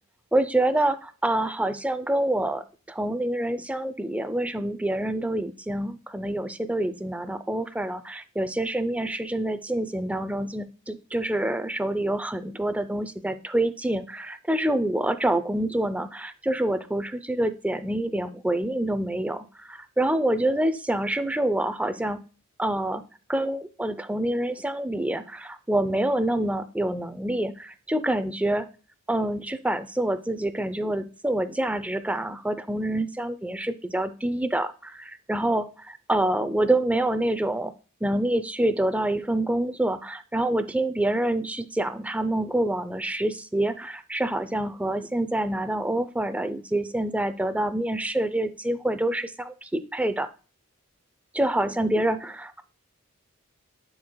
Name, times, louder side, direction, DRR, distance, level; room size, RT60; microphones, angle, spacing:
voice 1, 0.3-22.2 22.6-23.0 23.3-28.7 29.1-37.7 38.0-50.3 51.3-52.6, right 1 dB, 5° right, 11 dB, 0.4 m, -26 dB
10.5 x 4.7 x 2.2 m, 0.36 s
head